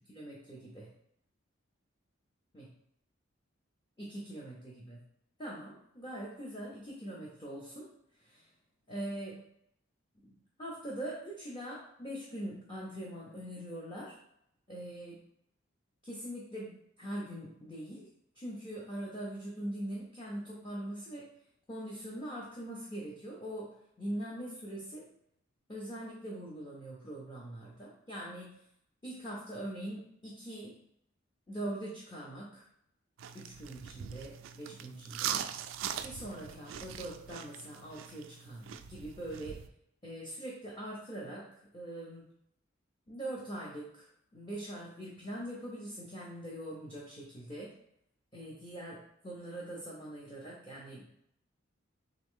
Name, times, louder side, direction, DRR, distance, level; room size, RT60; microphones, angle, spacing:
voice 1, 0.1-0.9 2.5-2.7 4.0-5.0 5.4-7.9 8.2-8.5 8.9-9.4 10.2-14.2 14.7-15.2 16.0-16.7 17.0-18.1 18.4-21.3 21.7-25.1 25.7-28.5 29.0-30.8 31.5-32.6 33.3-35.4 36.0-39.6 40.0-42.2 43.1-44.1 44.3-47.7 48.3-51.0, right 1 dB, 25° left, -4 dB, 0.7 m, -42 dB
sound 1, 33.2-39.7, right 9 dB, 75° right, 0.3 m, -41 dB
3.6 x 3.2 x 3.6 m, 0.74 s
head